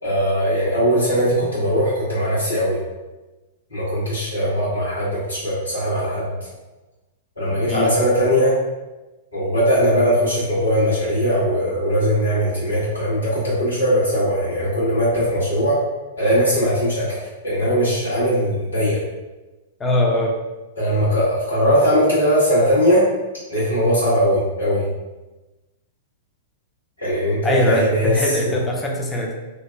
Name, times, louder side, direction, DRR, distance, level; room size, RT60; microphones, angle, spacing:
voice 1, 0.0-2.8 3.7-6.5 7.4-8.5 9.3-15.8 16.2-19.0 20.8-23.1 23.5-24.9 27.0-28.6, equal, 80° left, -10 dB, 1.3 m, -20 dB
voice 2, 19.8-20.3 27.4-29.3, left 1 dB, 15° left, -1 dB, 0.4 m, -21 dB
2.7 x 2.2 x 2.2 m, 1.1 s
figure-of-eight pair, 100°, 0 cm